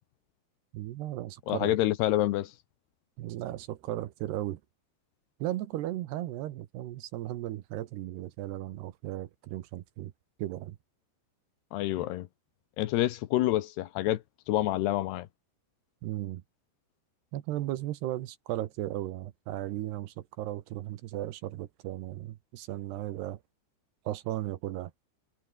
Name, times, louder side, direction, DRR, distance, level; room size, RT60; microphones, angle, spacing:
voice 1, 0.7-1.7 3.2-4.6 5.4-10.1 10.4-10.8 16.0-16.4 17.3-23.4 24.1-24.9, right 14 dB, 75° right, 3.0 m, -36 dB
voice 2, 1.5-2.5 11.7-12.3 12.8-15.3, left 15 dB, 75° left, 2.8 m, -28 dB
omnidirectional pair, 5.1 m